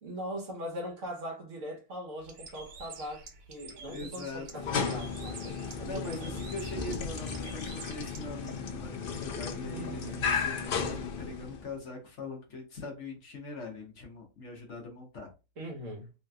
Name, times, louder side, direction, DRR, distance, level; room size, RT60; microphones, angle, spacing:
voice 1, 0.0-6.4 9.7-10.2 15.6-16.1, equal, 60° right, 1.3 m, -41 dB
Bird, 2.2-8.3, right 4 dB, 90° right, 1.3 m, -48 dB
voice 2, 3.9-4.5 5.8-15.3, left 3 dB, 55° left, 1.1 m, -42 dB
sound 1, 4.5-11.7, left 5 dB, 75° left, 0.5 m, -34 dB
3.2 x 2.8 x 2.3 m
omnidirectional pair, 1.5 m